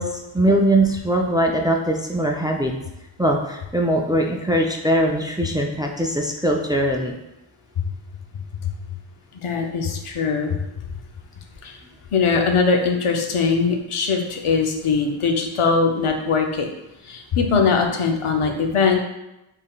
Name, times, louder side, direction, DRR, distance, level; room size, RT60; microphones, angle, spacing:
voice 1, 0.0-2.7 3.2-7.2, right 1 dB, 10° right, 1 dB, 0.3 m, -21 dB
voice 2, 9.3-10.6 11.6-11.8 12.1-16.7 17.1-19.0, left 5 dB, 85° left, 3 dB, 0.6 m, -21 dB
3.6 x 3.5 x 2.3 m, 0.91 s
cardioid pair, 40°, 49 cm